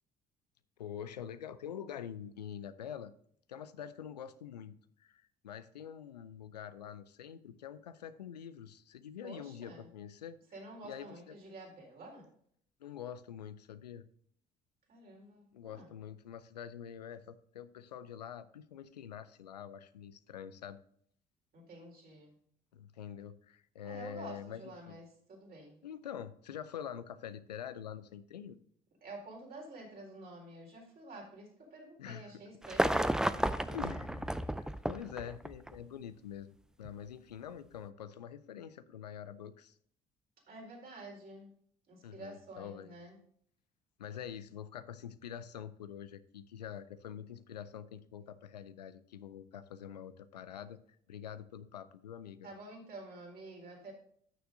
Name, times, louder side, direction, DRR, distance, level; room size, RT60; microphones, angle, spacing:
voice 1, 0.8-3.1 3.5-4.7 5.0-10.4 10.8-11.1 12.8-14.0 15.5-20.8 22.7-25.0 25.8-28.6 32.0-32.3 33.7-34.3 34.6-39.8 42.0-42.9 44.0-50.8 51.1-52.5, left 9 dB, 90° left, 14 dB, 0.5 m, -46 dB
voice 2, 9.2-9.9 10.5-12.3 14.9-15.9 21.5-22.4 23.8-25.8 29.0-33.8 40.5-41.5 41.9-43.2 52.4-53.9, right 2 dB, 50° right, -1 dB, 4.0 m, -49 dB
sound 1, 32.6-35.8 36.9-37.0, right 1 dB, 5° right, 0.5 m, -32 dB
12.5 x 6.7 x 2.6 m, 0.63 s
hypercardioid pair, 55°, 20 cm